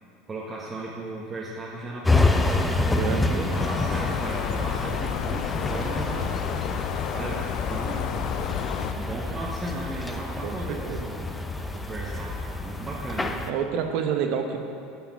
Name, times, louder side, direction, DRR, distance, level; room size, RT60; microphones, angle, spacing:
voice 1, 0.3-2.7 3.1-6.3 7.1-8.4 9.0-11.3 11.7-13.5, right 2 dB, 25° right, -4 dB, 1.4 m, -36 dB
sound 1, 2.0-13.5, left 2 dB, 10° left, 0.7 m, -28 dB
voice 2, 3.0-3.4 10.4-11.1 13.4-14.6, right 7 dB, 55° right, 5 dB, 1.0 m, -28 dB
sound 2, 3.5-8.9, left 10 dB, 55° left, 0.5 m, -31 dB
9.1 x 5.6 x 7.1 m, 2.5 s
figure-of-eight pair, 75°, 0 cm